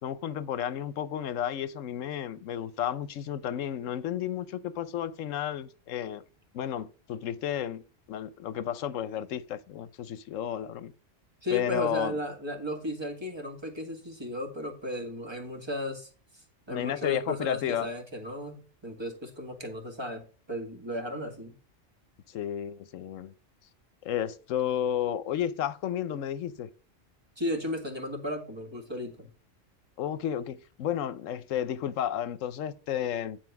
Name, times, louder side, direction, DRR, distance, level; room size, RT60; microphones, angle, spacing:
voice 1, 0.0-6.2 6.5-7.8 8.1-10.9 11.5-12.2 16.7-17.9 22.3-23.3 24.0-26.7 30.0-33.4, left 10 dB, 80° left, 1.1 m, -32 dB
voice 2, 11.4-21.5 27.4-29.3, left 1 dB, 20° right, 1.9 m, -35 dB
9.7 x 4.5 x 5.8 m
omnidirectional pair, 1.3 m